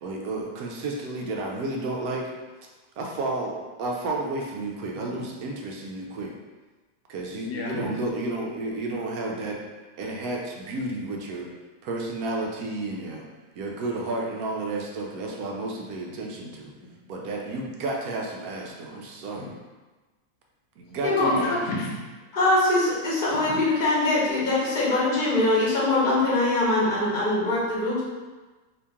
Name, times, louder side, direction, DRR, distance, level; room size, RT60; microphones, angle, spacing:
voice 1, 0.0-2.3 3.0-6.3 7.1-9.6 10.0-11.5 11.8-13.2 13.6-16.7 17.1-19.5 20.8-21.5, right 2 dB, 70° right, -1 dB, 0.9 m, -31 dB
voice 2, 7.5-7.9 19.4-19.5 21.2-22.0 23.5-23.6, left 2 dB, 80° left, 0 dB, 1.2 m, -31 dB
voice 3, 22.3-28.0, left 2 dB, 35° left, -8 dB, 1.0 m, -22 dB
2.9 x 2.8 x 3.4 m, 1.2 s
omnidirectional pair, 1.8 m